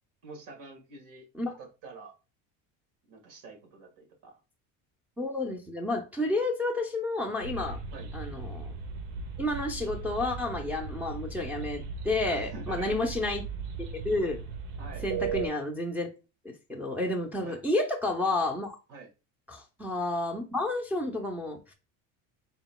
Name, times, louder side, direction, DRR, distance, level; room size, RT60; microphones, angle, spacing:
voice 1, 0.2-1.3 1.6-2.1 3.1-4.4 7.9-8.1 12.2-13.0 14.8-15.1 17.4-17.6 18.9-19.1, right 3 dB, 60° right, 1.7 m, -45 dB
voice 2, 5.2-7.8 8.1-8.7 9.4-13.5 13.9-14.4 15.0-16.1 16.4-18.8 19.5-21.7, left 2 dB, 5° right, 0.6 m, -30 dB
sound 1, 7.4-15.5, right 5 dB, 85° right, 0.9 m, -37 dB
4.0 x 3.8 x 2.2 m
cardioid pair, 125°, 35 cm